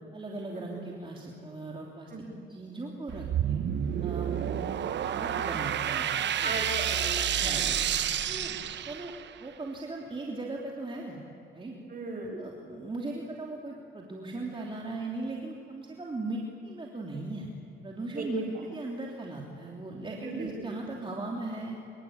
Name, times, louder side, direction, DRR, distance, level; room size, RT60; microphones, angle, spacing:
voice 1, 0.1-2.2 2.5-3.6 4.0-6.1 6.4-6.6 7.3-7.6 8.3-8.5 8.8-9.1 9.4-11.2 11.5-11.8 12.4-17.5 17.8-18.5 18.7-21.8, right 2 dB, 25° right, -1 dB, 3.3 m, -38 dB
sound 1, 3.1-9.4, right 9 dB, 65° right, 1.1 m, -30 dB
voice 2, 6.4-7.7 8.3-8.6 11.9-12.3 18.1-18.2 20.2-20.6, right 2 dB, 45° right, 1 dB, 7.9 m, -38 dB
25.0 x 24.0 x 8.8 m, 2.9 s
cardioid pair, 90°, 20 cm